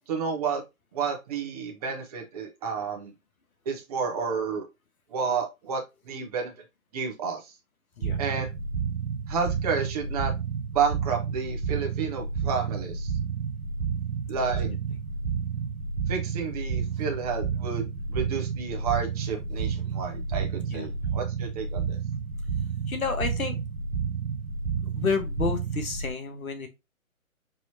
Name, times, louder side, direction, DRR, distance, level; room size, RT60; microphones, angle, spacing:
voice 1, 0.1-0.6 0.9-3.1 3.7-4.7 5.1-6.6 6.9-7.5 8.2-8.5 9.3-10.3 10.7-13.1 14.3-14.7 16.1-22.0, right 5 dB, 25° right, 2 dB, 0.8 m, -31 dB
sound 1, 8.0-26.1, right 6 dB, 90° right, 0.8 m, -31 dB
voice 2, 22.9-23.6 24.9-26.7, left 5 dB, 75° left, 6 dB, 1.5 m, -30 dB
4.8 x 2.9 x 2.8 m, 0.23 s
figure-of-eight pair, 140°, 42 cm